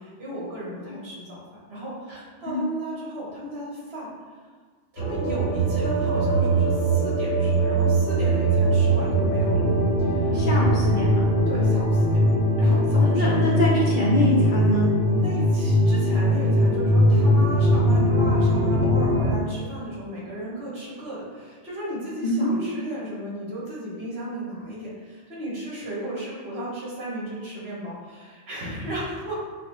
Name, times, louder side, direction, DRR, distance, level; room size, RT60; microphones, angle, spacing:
voice 1, 0.0-1.4 1.7-4.1 4.9-9.7 10.0-10.4 11.5-12.2 12.6-13.5 15.2-29.4, right 1 dB, 60° right, -6 dB, 1.4 m, -35 dB
sound 1, 5.0-19.4, equal, 90° left, 1.2 m, -21 dB
voice 2, 10.3-11.3 13.0-14.9 22.2-22.8, equal, 55° left, -4 dB, 0.6 m, -24 dB
5.9 x 2.1 x 3.0 m, 1.5 s
omnidirectional pair, 1.2 m